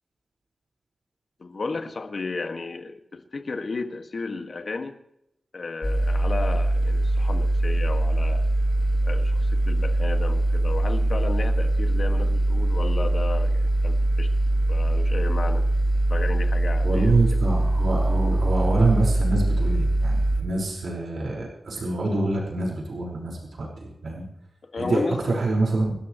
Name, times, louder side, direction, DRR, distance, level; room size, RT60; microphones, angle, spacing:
voice 1, 1.4-5.0 5.5-8.4 9.0-9.4 9.7-14.3 14.7-15.7 16.1-17.4 24.7-25.4, left 3 dB, 55° left, 5 dB, 1.9 m, -33 dB
sound 1, 5.8-20.4, right 1 dB, 25° left, 4.5 m, -22 dB
voice 2, 16.8-24.2 24.8-25.9, right 2 dB, 80° right, -3 dB, 5.1 m, -25 dB
29.0 x 13.5 x 3.2 m, 0.81 s
wide cardioid pair, 125°, 0 cm